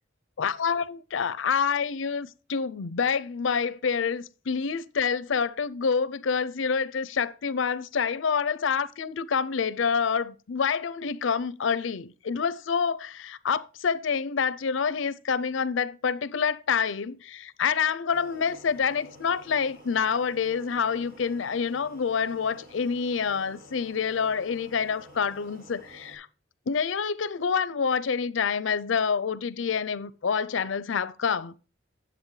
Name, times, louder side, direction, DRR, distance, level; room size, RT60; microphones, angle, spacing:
voice 1, 0.4-26.3 26.7-31.5, left 6 dB, 85° left, 0.5 m, -27 dB
sound 1, 18.1-26.2, equal, 50° right, 3.3 m, -51 dB
9.6 x 7.8 x 3.2 m
head